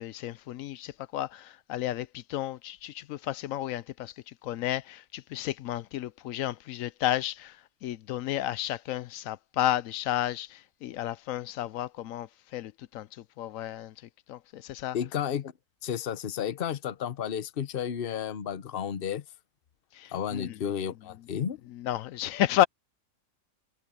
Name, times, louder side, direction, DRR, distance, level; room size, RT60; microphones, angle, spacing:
voice 1, 0.0-13.9 14.3-15.0 19.9-20.6 21.7-22.7, left 13 dB, 75° left, 1.0 m, -32 dB
voice 2, 14.9-15.5 15.8-19.2 20.1-21.6, left 8 dB, 45° left, 1.0 m, -32 dB
omnidirectional pair, 1.5 m